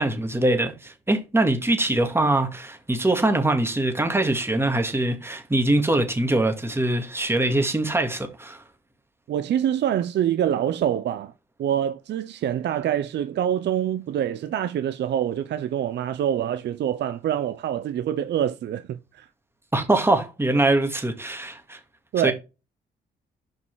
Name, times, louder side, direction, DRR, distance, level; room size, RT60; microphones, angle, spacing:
voice 1, 0.0-8.6 19.7-21.8 22.2-22.3, right 2 dB, 10° right, 2.1 m, -23 dB
voice 2, 9.3-11.3 11.6-19.3 22.1-22.3, right 10 dB, 60° right, 0.6 m, -25 dB
5.4 x 5.3 x 4.8 m
supercardioid pair, 65°, 20 cm